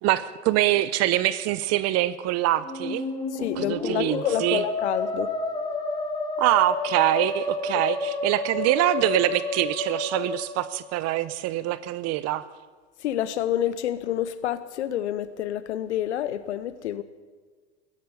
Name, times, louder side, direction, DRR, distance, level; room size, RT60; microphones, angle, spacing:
voice 1, 0.0-3.0 3.6-4.6 6.4-12.5, right 15 dB, 50° right, 16 dB, 0.7 m, -24 dB
Musical instrument, 2.5-11.3, left 3 dB, 15° left, 4.3 m, -30 dB
voice 2, 3.3-5.3 13.0-17.0, left 11 dB, 85° left, 14 dB, 0.8 m, -28 dB
14.5 x 11.0 x 8.0 m, 1.5 s
hypercardioid pair, 90°, 33 cm